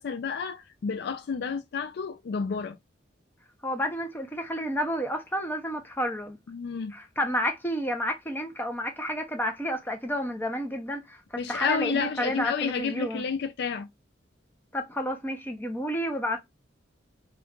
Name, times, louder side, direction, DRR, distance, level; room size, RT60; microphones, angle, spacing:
voice 1, 0.0-2.8 6.5-6.9 11.4-13.9, left 5 dB, 60° left, 0.4 m, -30 dB
voice 2, 3.6-6.4 6.9-13.2 14.7-16.4, equal, 10° left, 0.7 m, -30 dB
2.9 x 2.4 x 3.5 m
head